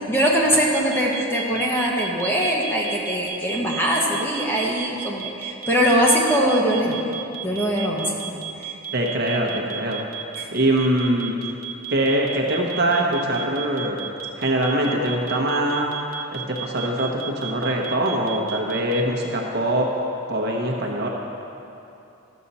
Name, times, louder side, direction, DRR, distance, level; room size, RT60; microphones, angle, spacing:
voice 1, 0.0-7.1 7.4-8.1 10.4-10.5, equal, 10° left, -3 dB, 1.1 m, -21 dB
sound 1, 0.7-19.0, right 11 dB, 70° right, 1.0 m, -33 dB
voice 2, 8.9-10.1 10.5-11.3 11.9-14.0 14.4-15.9 16.3-19.9 20.3-21.1, right 1 dB, 50° right, -1 dB, 1.1 m, -23 dB
12.5 x 7.4 x 4.2 m, 2.8 s
head